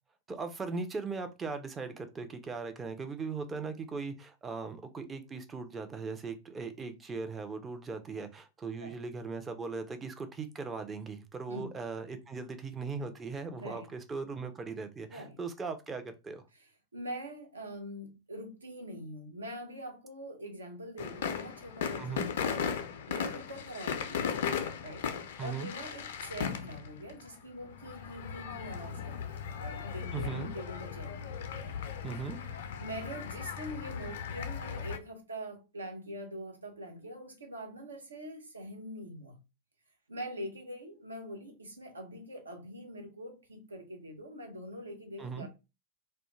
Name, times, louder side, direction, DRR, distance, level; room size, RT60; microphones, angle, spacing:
voice 1, 0.3-16.4 22.0-22.3 25.4-25.7 30.1-30.5 32.0-32.4 45.2-45.5, right 4 dB, 15° right, 0.4 m, -39 dB
voice 2, 16.5-22.5 23.1-24.3 24.8-25.1 25.4-31.2 32.8-39.4 40.1-45.5, equal, 75° right, 0.6 m, -44 dB
sound 1, 21.0-35.0, left 7 dB, 55° left, 0.3 m, -37 dB
2.1 x 2.1 x 3.0 m
figure-of-eight pair, 90°, 0 cm